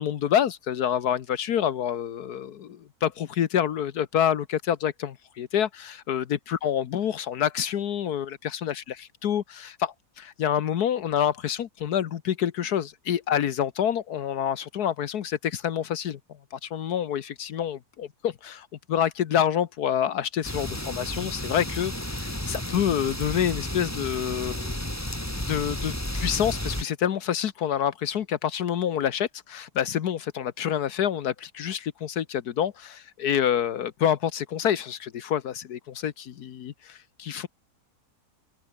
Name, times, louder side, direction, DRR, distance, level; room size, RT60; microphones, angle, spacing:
voice 1, 0.0-16.2 16.5-24.8 25.4-37.5, left 9 dB, 80° left, 1.6 m, -27 dB
sound 1, 20.4-26.8, left 1 dB, 10° left, 3.4 m, -32 dB
omnidirectional pair, 1.6 m